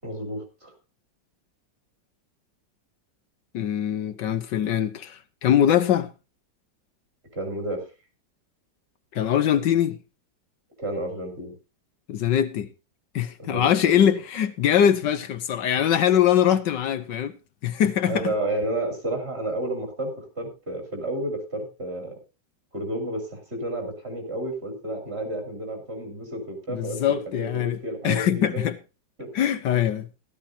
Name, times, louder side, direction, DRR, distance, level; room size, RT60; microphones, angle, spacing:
voice 1, 0.0-0.7 7.3-7.8 10.8-11.5 13.4-14.0 18.1-22.2 22.7-28.6 29.2-29.3, right 1 dB, 35° right, 5.1 m, -31 dB
voice 2, 3.5-6.1 9.1-10.0 12.1-12.7 13.1-17.4 17.6-18.3 26.7-27.8 28.0-28.8 29.3-30.1, left 9 dB, 75° left, 1.6 m, -22 dB
16.0 x 13.5 x 2.7 m
omnidirectional pair, 2.0 m